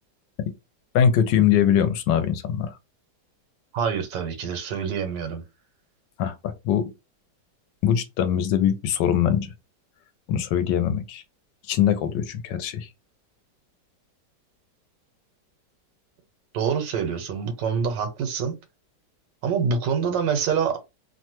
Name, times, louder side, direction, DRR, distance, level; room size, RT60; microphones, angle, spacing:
voice 1, 0.9-2.7 6.2-6.8 7.8-9.5 10.3-11.2 11.7-12.9, left 9 dB, 85° left, 1.2 m, -22 dB
voice 2, 3.7-5.4 16.5-18.5 19.4-20.8, right 6 dB, 80° right, 1.4 m, -26 dB
3.1 x 2.2 x 2.8 m
omnidirectional pair, 1.9 m